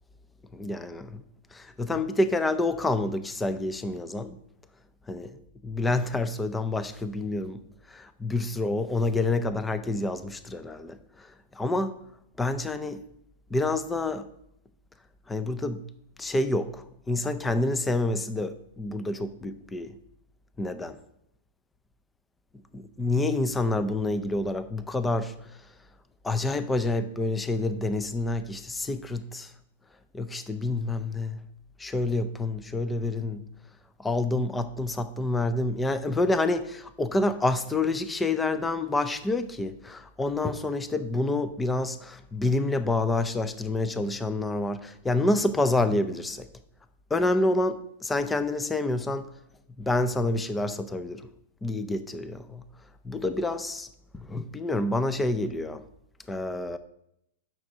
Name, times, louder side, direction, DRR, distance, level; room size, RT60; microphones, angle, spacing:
voice 1, 0.5-1.2 1.5-4.4 5.1-5.3 5.7-7.6 7.9-11.3 11.5-12.0 12.4-13.0 13.5-14.3 15.3-15.8 16.2-20.0 20.6-21.0 22.7-25.3 26.2-29.5 30.1-31.4 31.8-33.4 34.0-46.5 47.1-49.3 49.8-51.3 51.6-52.6 53.0-53.9 54.1-55.8 56.3-56.8, left 2 dB, 5° left, 0.5 m, -28 dB
6.4 x 6.0 x 7.3 m
supercardioid pair, 160°, 0 cm